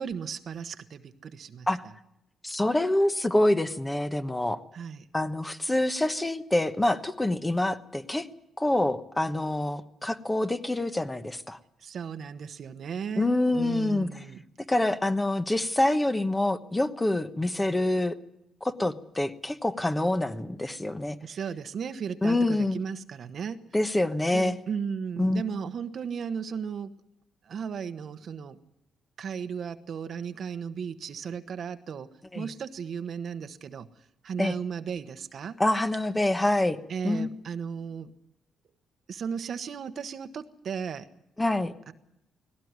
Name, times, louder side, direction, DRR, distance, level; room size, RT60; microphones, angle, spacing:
voice 1, 0.0-1.7 4.7-5.0 11.8-14.4 21.2-23.6 24.3-26.9 27.5-28.6 29.2-32.1 32.3-33.9 34.2-35.6 36.9-38.1 39.1-41.1 41.9-42.0, right 7 dB, 55° right, 10 dB, 1.1 m, -35 dB
voice 2, 2.4-4.6 5.1-8.3 8.6-11.6 13.2-14.2 14.7-18.2 18.6-21.2 22.2-22.8 23.7-24.6 25.2-25.4 32.3-32.5 34.4-34.5 35.6-36.8 37.0-37.3 41.4-41.7, left 1 dB, 15° left, 9 dB, 1.2 m, -26 dB
19.0 x 17.0 x 9.6 m, 0.83 s
cardioid pair, 90°, 0 cm